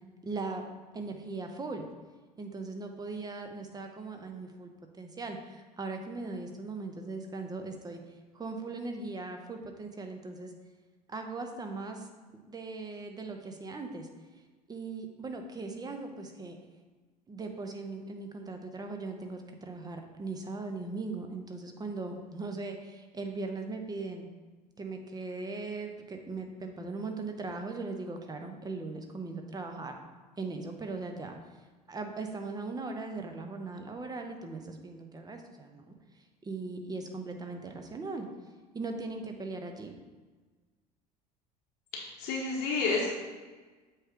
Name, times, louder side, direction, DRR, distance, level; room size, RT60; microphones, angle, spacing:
voice 1, 0.2-0.6 0.9-1.9 2.4-4.7 5.0-8.0 8.3-10.5 11.1-12.1 12.5-14.1 14.7-16.6 17.3-24.3 24.8-29.9 30.4-31.4 31.9-35.8 36.4-38.3 38.7-39.9, right 3 dB, 20° right, 4 dB, 0.8 m, -39 dB
voice 2, 41.9-43.1, left 4 dB, 50° left, -2 dB, 0.9 m, -30 dB
7.6 x 3.1 x 4.7 m, 1.3 s
figure-of-eight pair, 65°, 21 cm